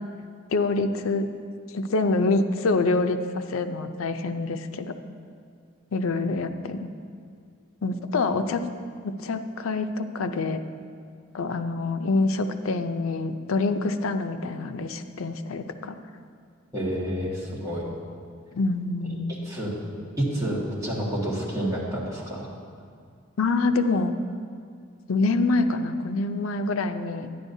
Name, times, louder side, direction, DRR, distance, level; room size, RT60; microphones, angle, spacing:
voice 1, 0.5-1.3 1.7-3.2 3.5-4.9 5.9-6.9 7.8-8.6 9.0-10.6 11.3-16.0 18.5-19.4 23.4-24.2 25.1-27.3, left 3 dB, 80° left, 8 dB, 0.5 m, -26 dB
voice 2, 16.7-17.8 19.4-19.7 20.2-22.5, right 1 dB, 15° right, -7 dB, 1.6 m, -29 dB
11.0 x 9.9 x 2.7 m, 2.2 s
head